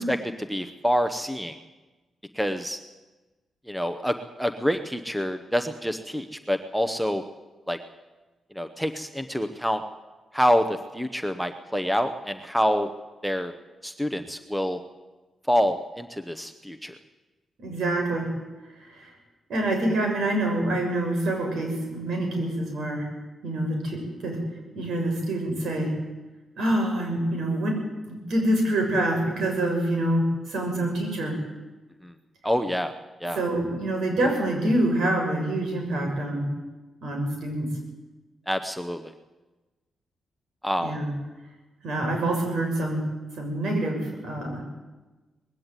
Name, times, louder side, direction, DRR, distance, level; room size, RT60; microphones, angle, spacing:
voice 1, 0.0-1.6 2.3-2.8 3.7-7.2 7.7-7.8 8.5-9.8 10.3-12.9 13.2-13.5 13.8-14.8 15.5-16.9 32.0-32.1 32.4-32.9 33.2-33.4 38.5-39.1 40.6-41.0, equal, ahead, 9 dB, 0.8 m, -27 dB
voice 2, 17.6-18.3 18.8-19.1 19.5-23.1 23.4-24.4 24.7-25.9 26.6-27.7 28.0-31.4 33.3-36.5 37.0-37.7 40.8-41.1 41.8-43.0 43.4-44.6, right 1 dB, 70° right, 2 dB, 6.9 m, -26 dB
20.0 x 16.5 x 9.1 m, 1.2 s
wide cardioid pair, 160°, 0 cm